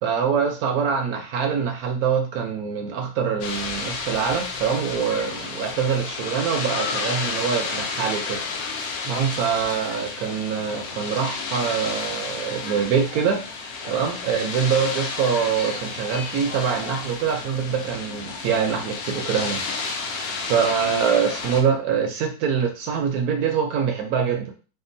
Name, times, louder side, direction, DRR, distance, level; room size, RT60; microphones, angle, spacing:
voice 1, 0.0-8.4 9.1-19.9 20.4-24.5, right 7 dB, 75° right, 4 dB, 1.0 m, -24 dB
sound 1, 3.4-21.6, left 4 dB, 70° left, 1.0 m, -31 dB
3.7 x 2.1 x 2.6 m, 0.35 s
omnidirectional pair, 1.7 m